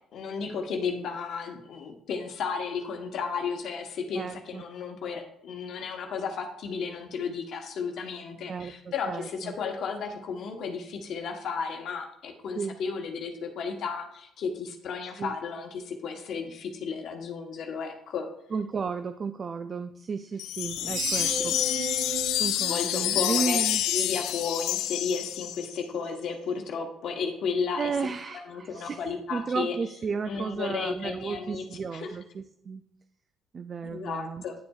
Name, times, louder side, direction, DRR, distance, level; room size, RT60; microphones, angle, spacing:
voice 1, 0.1-18.3 21.2-21.5 21.8-21.9 22.7-23.6 23.9-27.9 28.5-29.8 30.3-31.6 31.9-32.1 33.8-34.5, left 5 dB, 65° left, 3 dB, 1.0 m, -33 dB
voice 2, 4.2-4.6 8.5-9.6 12.5-12.8 15.2-15.3 18.5-21.8 22.4-23.8 27.8-29.0 29.3-32.8 33.5-34.4, right 5 dB, 35° right, 9 dB, 0.4 m, -33 dB
sound 1, 20.4-25.8, left 13 dB, 80° left, 0.3 m, -28 dB
Screech, 20.6-23.8, right 6 dB, 75° right, 0.8 m, -36 dB
9.3 x 6.9 x 2.3 m, 0.76 s
cardioid pair, 110°, 0 cm